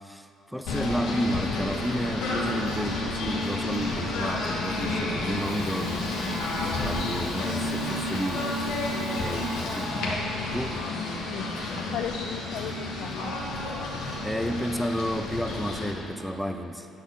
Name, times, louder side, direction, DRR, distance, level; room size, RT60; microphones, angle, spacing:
voice 1, 0.0-6.4 6.8-8.6 8.9-10.3 10.5-10.8 14.2-16.9, equal, ahead, 7 dB, 0.4 m, -32 dB
Singing / Bird, 0.6-15.9, left 2 dB, 85° left, 1.7 m, -30 dB
Water tap faucet / Toilet flush, 2.4-10.4, left 1 dB, 40° left, 2.2 m, -47 dB
voice 2, 11.8-13.3 13.6-14.5, left 9 dB, 65° left, 10 dB, 0.4 m, -37 dB
10.5 x 4.5 x 6.6 m, 2.7 s
cardioid pair, 140°, 0 cm